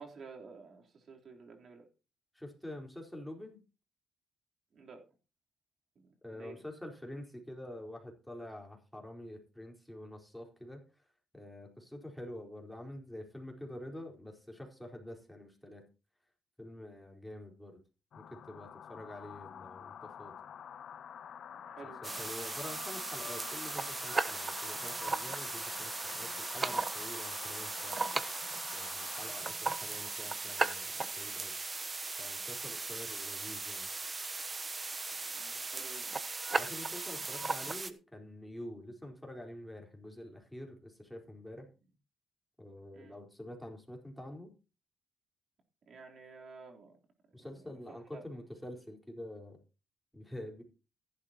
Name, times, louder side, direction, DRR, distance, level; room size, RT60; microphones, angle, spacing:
voice 1, 0.0-1.9 4.7-5.0 6.3-6.6 21.5-22.2 35.3-36.1 42.9-43.2 45.9-46.9 47.4-48.2, right 4 dB, 55° right, 3.6 m, -51 dB
voice 2, 2.3-3.6 6.2-11.1 11.3-15.8 16.6-17.8 18.1-20.3 21.8-28.1 28.7-31.5 32.2-33.9 36.6-41.7 42.6-44.5 47.3-49.6 50.1-50.6, left 1 dB, 5° left, 4.4 m, -47 dB
sound 1, 18.1-29.4, left 8 dB, 60° left, 0.5 m, -47 dB
sound 2, 22.0-37.9, right 3 dB, 25° right, 1.0 m, -37 dB
15.0 x 11.5 x 3.0 m
cardioid pair, 90°, 0 cm